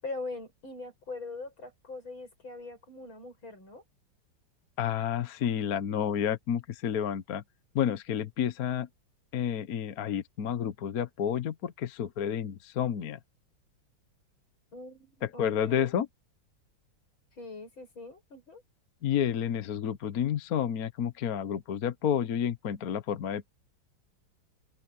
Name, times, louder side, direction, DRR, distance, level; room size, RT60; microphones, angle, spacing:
voice 1, 0.0-3.8 14.7-15.9 17.3-18.6, left 3 dB, 90° left, 8.7 m, -42 dB
voice 2, 4.8-7.4 7.7-8.9 9.3-13.2 15.4-16.1 19.0-23.5, left 9 dB, 55° left, 1.3 m, -30 dB
open air
omnidirectional pair, 2.1 m